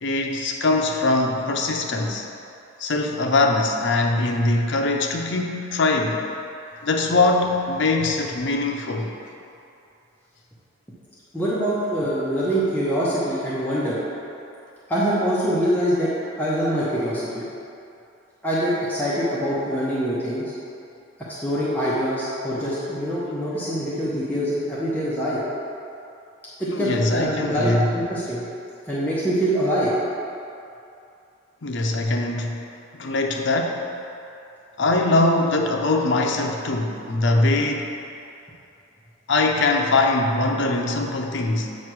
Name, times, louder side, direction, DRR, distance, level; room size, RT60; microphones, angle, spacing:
voice 1, 0.0-2.3 2.8-6.2 6.8-9.1 26.7-27.9 31.6-32.6 33.0-33.8 34.8-37.9 39.3-41.8, left 2 dB, 60° left, 2 dB, 0.6 m, -22 dB
voice 2, 11.3-14.0 14.9-17.4 18.4-20.5 21.3-25.4 26.6-28.5 28.9-29.9, equal, 10° left, -9 dB, 0.7 m, -24 dB
7.8 x 3.1 x 6.0 m, 2.7 s
head